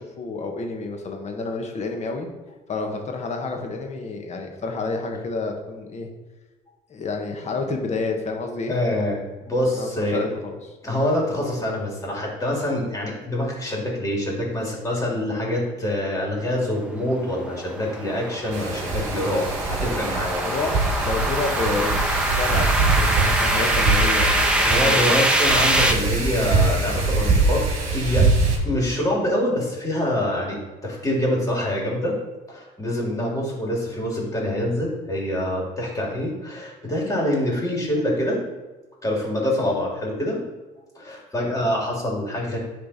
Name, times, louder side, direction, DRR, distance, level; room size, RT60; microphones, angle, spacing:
voice 1, 0.0-2.3 2.7-6.1 6.9-8.7 9.7-10.7 20.4-25.1 37.3-37.6 41.4-41.7, left 3 dB, 40° left, 3 dB, 1.2 m, -29 dB
voice 2, 8.7-9.2 9.5-10.2 10.8-20.4 24.6-27.6 27.9-28.2 28.6-30.6 30.8-32.1 32.5-38.4 39.0-40.4 40.9-42.6, left 1 dB, 20° left, -2 dB, 2.5 m, -25 dB
sound 1, 16.8-25.9, right 1 dB, 5° right, 0.9 m, -24 dB
Wind, 18.5-28.6, right 3 dB, 50° right, 2.0 m, -23 dB
10.0 x 3.4 x 4.1 m, 1.2 s
cardioid pair, 110°, 17 cm